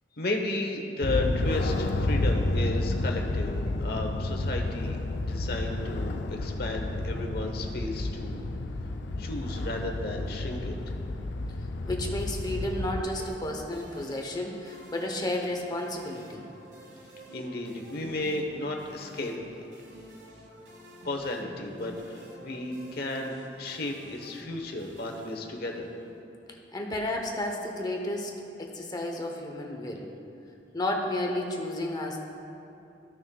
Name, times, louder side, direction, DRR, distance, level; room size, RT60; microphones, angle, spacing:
voice 1, 0.2-8.4 9.2-10.8 17.3-19.3 21.0-25.9, left 2 dB, 60° left, 2 dB, 1.0 m, -34 dB
sound 1, 1.0-13.0, left 2 dB, 80° left, 0.5 m, -30 dB
voice 2, 11.9-16.5 26.7-28.3 28.6-30.1 30.7-32.2, left 1 dB, 25° left, 1 dB, 0.9 m, -32 dB
sound 2, 13.2-26.2, right 1 dB, 80° right, 1.3 m, -49 dB
15.0 x 6.1 x 2.3 m, 2.9 s
head